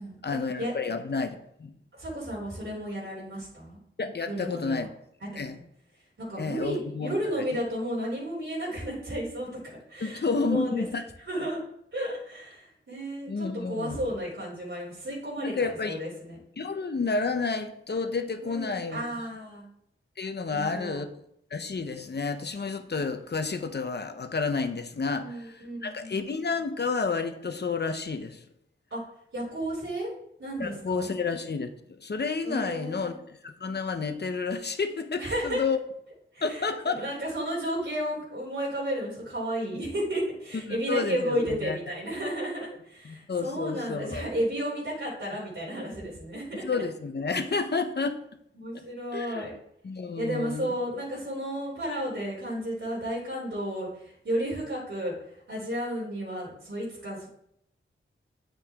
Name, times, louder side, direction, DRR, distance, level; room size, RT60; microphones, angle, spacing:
voice 1, 0.2-1.7 4.0-4.9 5.4-5.6 6.4-7.4 10.0-11.0 11.3-11.5 13.3-14.0 15.4-16.0 16.6-19.0 20.2-21.1 21.5-25.5 25.8-28.4 30.6-31.7 32.0-35.8 36.4-37.0 40.7-41.8 43.0-44.2 46.6-48.2 49.1-49.4 49.8-50.7, left 4 dB, 55° left, 8 dB, 0.8 m, -30 dB
voice 2, 1.9-3.8 4.3-4.9 5.2-5.3 5.5-5.7 6.2-10.9 11.3-11.6 11.9-16.4 18.4-19.7 20.5-21.0 25.1-26.3 28.9-29.0 29.3-30.1 30.4-31.1 32.4-33.2 35.2-35.6 36.3-46.8 48.6-49.5 50.2-55.1 55.5-57.3, equal, 70° right, -6 dB, 3.5 m, -33 dB
8.7 x 7.0 x 3.6 m, 0.74 s
wide cardioid pair, 100°, 21 cm